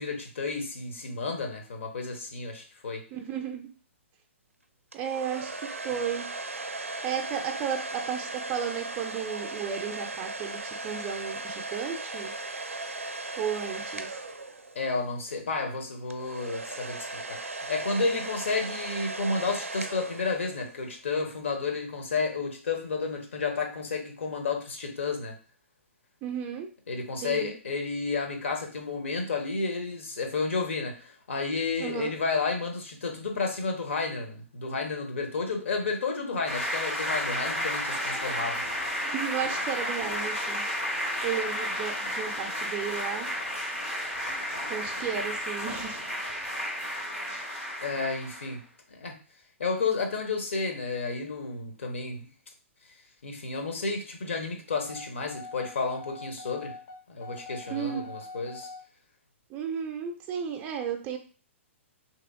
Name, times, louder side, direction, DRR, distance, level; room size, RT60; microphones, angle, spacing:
voice 1, 0.0-3.0 14.7-17.4 17.7-25.4 26.9-38.6 47.8-48.6 48.9-49.2 49.6-52.3 53.2-56.8 57.1-58.7, left 4 dB, 65° left, 3 dB, 0.8 m, -31 dB
voice 2, 3.1-3.7 4.9-5.5 5.8-6.3 7.0-12.3 13.4-14.2 26.2-26.7 27.2-27.6 31.8-32.2 39.0-40.7 41.2-43.3 44.7-46.0 57.7-58.1 59.5-61.2, right 8 dB, 25° right, 4 dB, 0.4 m, -33 dB
sound 1, 4.9-15.0 16.1-20.8, right 2 dB, 85° right, 0.4 m, -37 dB
sound 2, 36.5-48.6, equal, 85° left, 1.4 m, -32 dB
sound 3, 54.9-58.8, left 3 dB, 35° left, 0.5 m, -43 dB
3.2 x 2.9 x 2.5 m, 0.39 s
figure-of-eight pair, 115°, 7 cm